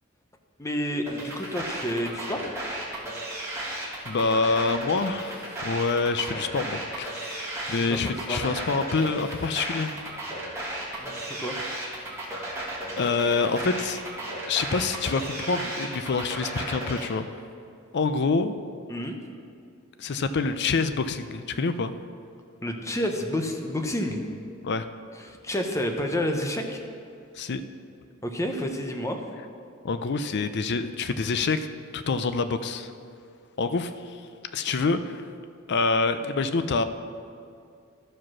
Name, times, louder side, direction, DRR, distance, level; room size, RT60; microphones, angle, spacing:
voice 1, 0.6-2.6 7.6-8.4 11.0-11.5 18.9-19.2 22.6-24.2 25.1-26.8 28.2-29.2, left 1 dB, 15° left, 4 dB, 0.8 m, -30 dB
sound 1, 1.1-17.1, right 1 dB, 15° right, 1.7 m, -34 dB
voice 2, 4.1-9.9 13.0-14.0 14.5-17.3 17.9-18.6 20.0-21.9 24.6-24.9 27.4-27.6 29.8-31.7 31.9-32.9 33.6-33.9 34.5-35.2 35.7-36.8, left 4 dB, 50° left, 11 dB, 0.5 m, -26 dB
13.0 x 4.9 x 6.1 m, 2.5 s
head